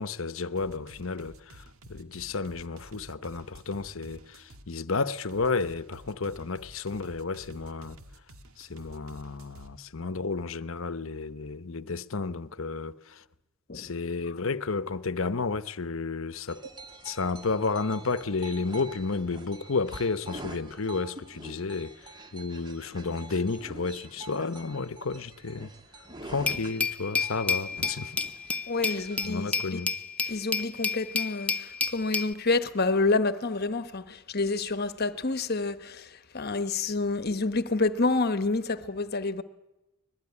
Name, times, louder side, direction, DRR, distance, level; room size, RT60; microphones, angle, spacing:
voice 1, 0.0-1.6 1.9-8.0 8.6-13.2 13.7-16.6 17.0-22.0 22.3-25.7 26.2-28.2 28.9-29.9, left 4 dB, 70° left, 0.9 m, -32 dB
sound 1, 0.6-4.7 5.3-9.7, right 1 dB, 85° right, 1.9 m, -51 dB
sound 2, 16.5-29.5, right 2 dB, 20° right, 1.9 m, -46 dB
Glass, 26.5-32.3, left 4 dB, 5° left, 0.9 m, -30 dB
voice 2, 28.7-29.8 30.2-39.4, left 3 dB, 50° left, 1.2 m, -28 dB
24.5 x 20.5 x 9.8 m
head